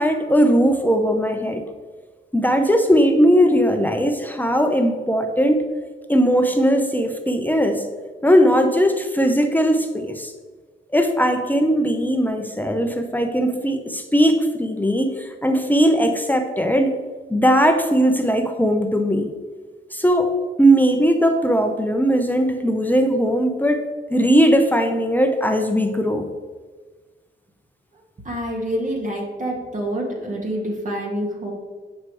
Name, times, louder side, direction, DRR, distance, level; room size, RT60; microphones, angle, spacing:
voice 1, 0.0-1.6 2.3-5.6 6.1-7.8 8.2-10.3 10.9-17.0 17.3-19.3 19.9-20.3 20.6-26.3, equal, 10° left, 5 dB, 0.7 m, -19 dB
voice 2, 28.2-31.5, equal, 40° right, -1 dB, 1.8 m, -27 dB
8.3 x 5.1 x 4.8 m, 1.4 s
cardioid pair, 80°, 20 cm